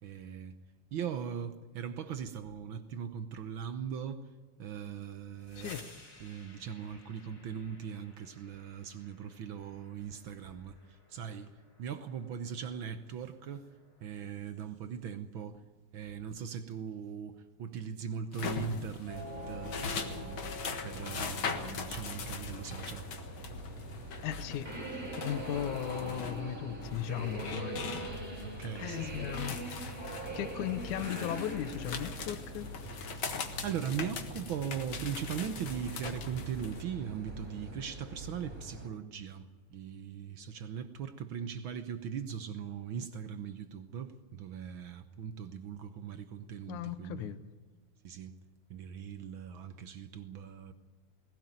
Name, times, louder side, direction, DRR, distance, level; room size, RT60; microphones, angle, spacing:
voice 1, 0.0-0.6 0.9-4.2 4.6-5.7 6.2-11.5 11.8-13.7 14.0-15.6 15.9-23.1 23.5-23.6 28.4-29.2 33.1-33.3 33.6-47.3 48.0-48.4 48.7-50.7, right 8 dB, 70° right, 10 dB, 1.2 m, -40 dB
sound 1, 5.2-14.9, left 2 dB, 25° left, 3.3 m, -57 dB
sound 2, 18.3-36.8, left 5 dB, 50° left, 2.1 m, -41 dB
sound 3, 19.1-38.9, right 1 dB, 20° right, 4.0 m, -43 dB
voice 2, 24.2-27.8 28.8-32.7 46.7-47.5, left 10 dB, 85° left, 13 dB, 2.4 m, -37 dB
20.0 x 17.0 x 9.0 m, 1.3 s
omnidirectional pair, 3.4 m